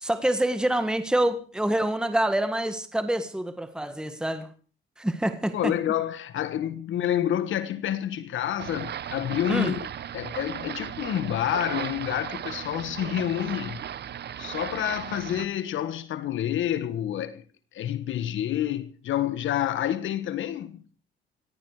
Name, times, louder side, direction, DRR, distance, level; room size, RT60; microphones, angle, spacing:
voice 1, 0.0-4.5 5.0-5.7 9.5-9.7, right 1 dB, 5° right, 1.7 m, -26 dB
voice 2, 5.5-9.8 10.1-13.8 14.4-17.4 17.7-20.8, left 11 dB, 75° left, 1.5 m, -28 dB
sound 1, 8.6-15.5, right 10 dB, 55° right, 1.0 m, -36 dB
18.0 x 14.5 x 4.9 m
cardioid pair, 90°, 20 cm